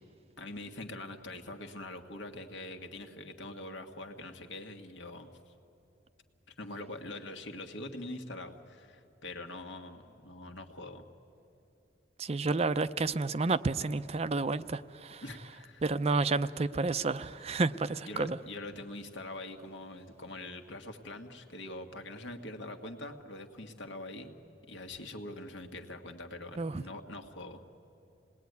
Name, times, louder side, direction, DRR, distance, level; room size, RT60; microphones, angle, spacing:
voice 1, 0.4-5.5 6.5-11.0 15.2-15.8 18.1-24.4 24.7-27.6, left 2 dB, 80° left, 5 dB, 1.7 m, -44 dB
voice 2, 12.2-15.2 15.8-18.4 26.6-26.8, right 3 dB, 35° right, 14 dB, 0.5 m, -30 dB
26.5 x 19.5 x 9.5 m, 2.9 s
head